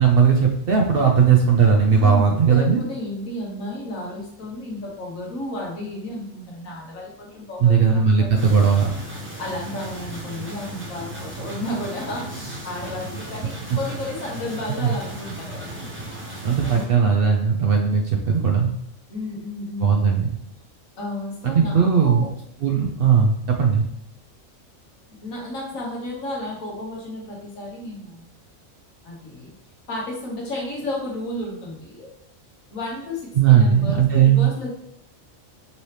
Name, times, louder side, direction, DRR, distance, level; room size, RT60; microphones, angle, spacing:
voice 1, 0.0-2.8 7.6-8.9 14.7-14.9 16.4-18.7 19.8-20.3 21.4-22.2 22.6-23.9 33.4-34.5, right 6 dB, 60° right, 2 dB, 0.6 m, -17 dB
voice 2, 1.9-8.5 9.4-15.9 16.6-17.1 19.1-20.2 21.0-22.3 22.7-22.9 25.2-28.2 29.0-29.5 29.9-32.1 32.7-34.7, left 1 dB, 85° left, -3 dB, 1.6 m, -33 dB
sound 1, 8.3-16.9, right 1 dB, 10° right, 0.7 m, -36 dB
5.4 x 2.9 x 3.2 m, 0.71 s
omnidirectional pair, 1.4 m